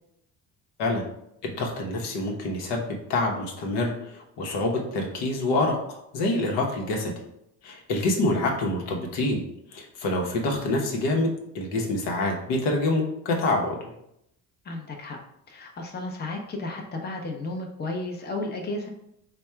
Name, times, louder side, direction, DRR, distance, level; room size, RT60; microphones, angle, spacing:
voice 1, 1.4-7.1 7.6-9.4 9.7-13.9, left 2 dB, 80° left, 1 dB, 1.0 m, -26 dB
voice 2, 14.6-15.2 15.5-18.9, left 2 dB, 25° left, 1 dB, 0.7 m, -33 dB
3.4 x 2.3 x 4.4 m, 0.77 s
cardioid pair, 100°, 40 cm